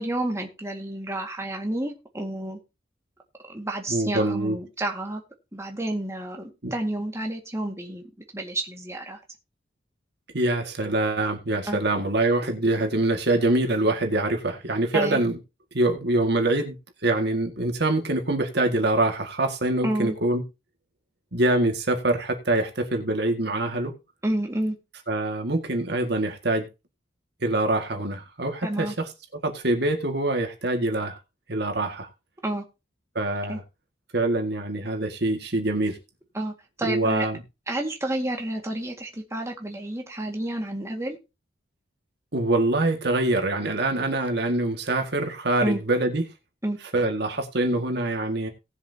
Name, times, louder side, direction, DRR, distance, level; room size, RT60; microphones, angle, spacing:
voice 1, 0.0-2.6 3.5-5.2 5.5-8.0 8.3-9.2 11.7-11.8 14.9-15.2 19.8-20.2 24.2-24.8 28.6-28.9 32.4-32.6 33.5-33.6 36.3-37.3 37.7-41.2 45.6-45.8 46.6-46.8, right 1 dB, 15° right, 1.9 m, -30 dB
voice 2, 3.9-4.6 6.6-6.7 10.3-15.4 15.7-16.8 17.0-20.4 21.3-23.9 25.1-26.7 27.4-29.1 29.4-31.2 31.5-32.1 33.2-33.6 34.1-36.0 36.8-37.4 42.3-46.3 46.9-48.5, right 2 dB, 60° right, 2.0 m, -24 dB
18.5 x 7.3 x 2.8 m
head